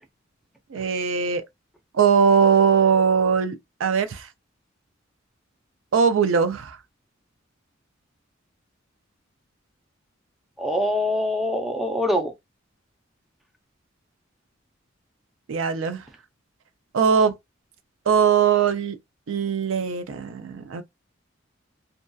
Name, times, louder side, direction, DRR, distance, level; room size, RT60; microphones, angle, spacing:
voice 1, 0.7-1.4 1.9-3.6 3.8-4.3 5.9-6.8 15.5-16.0 16.9-17.4 18.1-19.0 19.3-20.8, right 6 dB, 75° right, 0.4 m, -20 dB
voice 2, 10.6-12.3, left 1 dB, ahead, 0.5 m, -24 dB
2.6 x 2.2 x 2.2 m
head